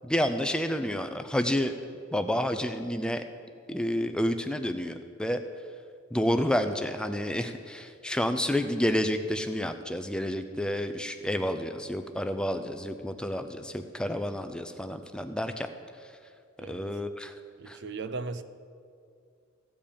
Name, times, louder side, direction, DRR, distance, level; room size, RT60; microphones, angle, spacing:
voice 1, 0.0-1.7 2.1-3.2 3.7-5.4 6.1-15.7 16.0-16.1 16.6-17.3 17.7-17.8, equal, 5° left, 8 dB, 0.4 m, -29 dB
voice 2, 17.6-18.4, right 4 dB, 55° right, 12 dB, 0.6 m, -37 dB
15.0 x 5.3 x 8.6 m, 2.3 s
head